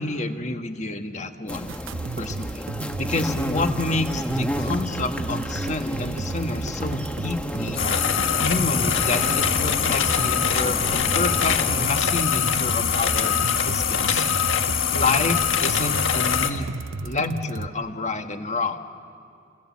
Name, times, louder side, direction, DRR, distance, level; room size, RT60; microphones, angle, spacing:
voice 1, 0.0-1.7 2.1-2.7 3.0-7.8 8.4-14.3 14.9-16.7 17.0-18.8, left 2 dB, 35° left, 6 dB, 1.4 m, -28 dB
sound 1, 1.5-11.9, equal, 5° left, 1.1 m, -32 dB
sound 2, 1.7-17.7, right 4 dB, 70° right, 0.6 m, -34 dB
sound 3, 7.8-16.5, left 8 dB, 70° left, 1.6 m, -23 dB
29.0 x 27.0 x 7.3 m, 2.4 s
head